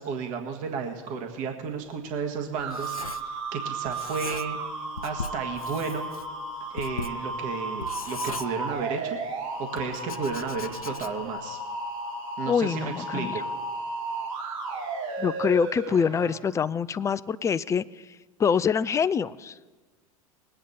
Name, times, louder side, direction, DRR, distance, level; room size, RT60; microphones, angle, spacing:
voice 1, 0.0-4.6 5.0-6.1 6.7-9.2 9.6-11.6 12.4-13.4, right 5 dB, 45° right, 3 dB, 1.7 m, -33 dB
Writing, 1.7-3.6 3.8-4.7 5.0-9.1 9.8-11.4, left 4 dB, 85° left, 0.6 m, -39 dB
sound 1, 2.6-16.3, right 2 dB, 70° right, 4.2 m, -34 dB
voice 2, 12.5-13.4 15.2-17.8 18.4-19.5, left 6 dB, 15° left, 17 dB, 0.4 m, -25 dB
21.0 x 8.8 x 4.2 m, 1.3 s
figure-of-eight pair, 85°, 18 cm